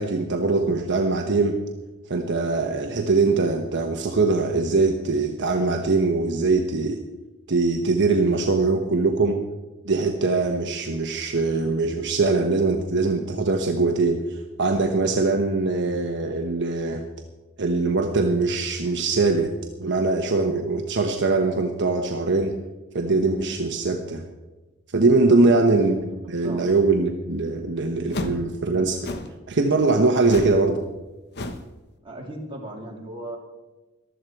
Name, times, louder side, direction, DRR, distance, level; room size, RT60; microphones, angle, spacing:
voice 1, 0.0-1.6 2.1-7.0 7.5-9.4 9.8-14.2 14.6-17.0 17.6-22.6 22.9-24.2 24.9-29.1 29.5-30.8, right 3 dB, 55° right, 4 dB, 1.1 m, -22 dB
sound 1, 28.1-28.4 29.0-29.4 30.3-30.6 30.9-31.1 31.3-31.7, left 1 dB, 50° left, 1.1 m, -31 dB
voice 2, 32.0-33.4, right 1 dB, 25° right, -2 dB, 3.1 m, -37 dB
15.0 x 12.5 x 4.6 m, 1.1 s
head